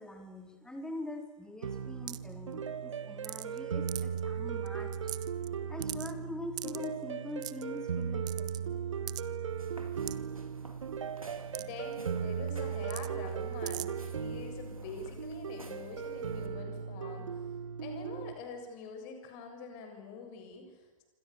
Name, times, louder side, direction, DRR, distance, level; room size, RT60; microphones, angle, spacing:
voice 1, 0.0-5.1 5.7-8.9, left 2 dB, 5° left, 5 dB, 3.9 m, -43 dB
sound 1, 1.6-18.3, right 7 dB, 65° right, 1.9 m, -37 dB
sound 2, 2.1-2.3 3.2-3.6 3.9-4.2 4.7-4.8 4.9-5.5 5.8-6.1 6.6-6.9 7.4-7.6 8.3-8.6 9.1-9.2 10.1-10.2 11.5-11.6 11.9-12.0 12.9-13.1 13.7-13.9, right 15 dB, 25° right, 1.0 m, -40 dB
sound 3, 9.5-16.5, right 1 dB, 85° right, 3.3 m, -52 dB
voice 2, 11.2-17.3 17.8-21.0, left 4 dB, 35° left, 5 dB, 7.0 m, -46 dB
27.5 x 26.0 x 7.1 m, 1.2 s
figure-of-eight pair, 110°, 18 cm